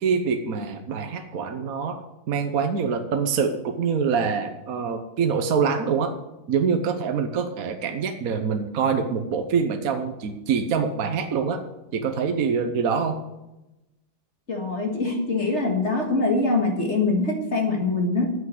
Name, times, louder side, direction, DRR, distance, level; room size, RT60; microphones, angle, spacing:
voice 1, 0.0-2.0 2.3-6.1 6.5-11.6 11.9-13.2, right 6 dB, 55° right, 6 dB, 1.0 m, -25 dB
voice 2, 14.5-18.3, left 3 dB, 35° left, 1 dB, 1.9 m, -23 dB
9.6 x 8.2 x 7.8 m, 0.97 s
omnidirectional pair, 2.4 m